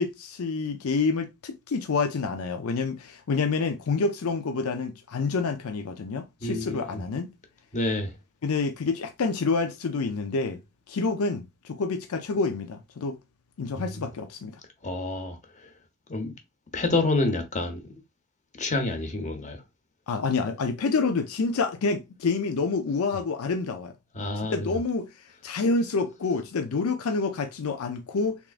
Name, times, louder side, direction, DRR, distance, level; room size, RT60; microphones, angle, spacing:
voice 1, 0.0-7.3 8.4-10.6 10.9-13.2 13.6-14.6 20.1-23.9 24.4-25.1 25.4-28.4, left 4 dB, 80° left, 0.5 m, -28 dB
voice 2, 6.4-7.0 7.7-8.1 13.8-14.1 14.8-15.7 16.1-16.3 16.7-17.8 18.5-19.6 24.1-24.7, left 2 dB, 35° left, 0.9 m, -28 dB
3.5 x 3.5 x 2.4 m
head